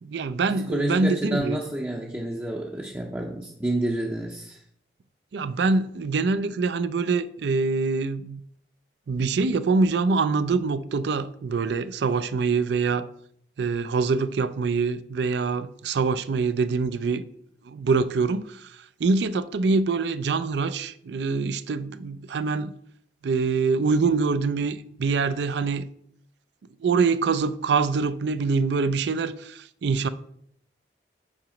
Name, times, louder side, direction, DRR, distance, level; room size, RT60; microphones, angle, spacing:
voice 1, 0.0-1.6 5.3-8.4 9.1-13.1 13.6-17.2 17.7-18.7 19.0-22.7 23.2-25.9 26.8-30.1, right 4 dB, 70° right, 0.4 m, -24 dB
voice 2, 0.5-4.6, right 1 dB, 10° right, 0.5 m, -29 dB
8.6 x 3.0 x 4.9 m
head